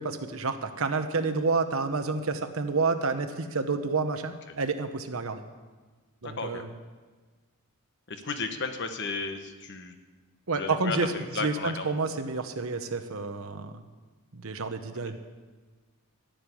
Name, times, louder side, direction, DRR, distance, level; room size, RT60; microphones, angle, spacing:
voice 1, 0.0-5.4 6.2-6.7 10.5-11.1 11.4-13.8 14.3-15.2, right 4 dB, 70° right, 8 dB, 1.0 m, -29 dB
voice 2, 6.2-6.6 8.1-9.9 10.6-11.8, left 4 dB, 50° left, 7 dB, 1.2 m, -34 dB
13.5 x 6.7 x 9.9 m, 1.3 s
head